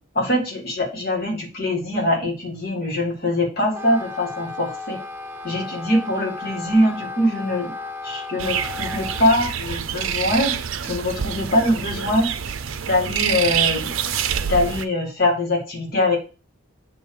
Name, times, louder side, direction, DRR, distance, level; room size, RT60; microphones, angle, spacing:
voice 1, 0.1-5.0 5.4-7.7 8.0-10.5 10.8-12.3 12.9-13.9 14.4-16.2, left 1 dB, 50° left, 0 dB, 2.2 m, -22 dB
Wind instrument woodwind instrument, 3.6-9.3, left 3 dB, 10° right, 0.7 m, -34 dB
sound 1, 8.4-14.8, right 8 dB, 75° right, 0.6 m, -26 dB
8.6 x 3.1 x 4.8 m, 0.34 s
head